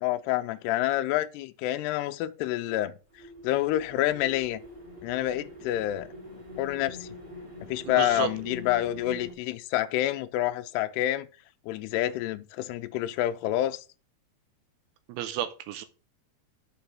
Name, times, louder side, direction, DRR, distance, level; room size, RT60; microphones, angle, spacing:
voice 1, 0.0-2.9 3.4-4.6 5.0-6.1 6.6-7.1 7.7-11.3 11.7-13.8, left 14 dB, 80° left, 2.5 m, -28 dB
sound 1, 3.1-9.3, left 1 dB, 15° right, 1.8 m, -44 dB
voice 2, 7.9-8.3 15.1-15.8, right 11 dB, 85° right, 2.7 m, -32 dB
6.8 x 4.9 x 5.9 m
omnidirectional pair, 5.0 m